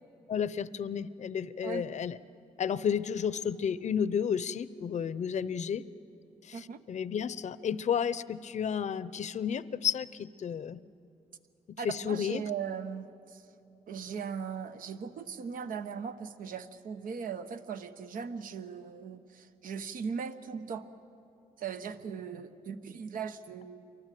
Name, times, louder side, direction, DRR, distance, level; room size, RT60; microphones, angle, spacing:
voice 1, 0.3-2.2 2.6-5.8 6.4-10.8 11.8-12.4, left 7 dB, 55° left, 16 dB, 0.7 m, -32 dB
voice 2, 11.8-13.4 13.9-20.9 21.6-23.9, right 6 dB, 75° right, 9 dB, 1.1 m, -39 dB
28.5 x 23.5 x 7.6 m, 2.7 s
cardioid pair, 85°, 14 cm